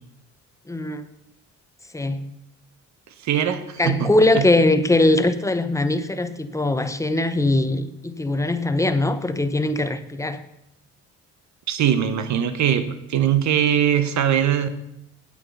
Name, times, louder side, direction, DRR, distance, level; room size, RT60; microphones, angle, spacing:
voice 1, 0.7-1.0 1.9-2.2 3.8-10.4, left 2 dB, 10° left, 10 dB, 0.8 m, -21 dB
voice 2, 3.2-4.5 11.7-14.7, right 9 dB, 65° right, 10 dB, 1.2 m, -21 dB
8.7 x 8.7 x 5.6 m, 0.80 s
cardioid pair, 90°, 30 cm